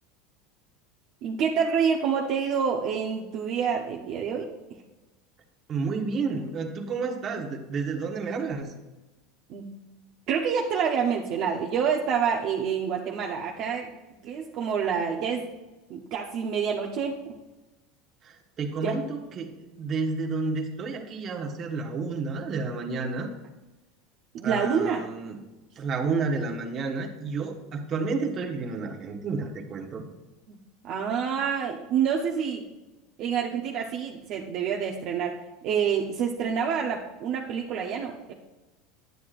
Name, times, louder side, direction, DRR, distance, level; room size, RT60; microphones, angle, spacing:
voice 1, 1.2-4.5 9.5-9.8 10.3-13.9 14.2-15.5 15.9-17.2 18.8-19.0 24.3-25.0 30.5-30.6 30.8-32.6 33.2-35.3 35.6-38.3, right 7 dB, 50° right, -1 dB, 0.8 m, -27 dB
voice 2, 5.7-8.7 18.2-23.3 24.4-25.4 25.8-30.0, right 4 dB, 35° right, 2 dB, 1.2 m, -31 dB
9.6 x 9.4 x 2.5 m, 1.1 s
supercardioid pair, 130°, 0 cm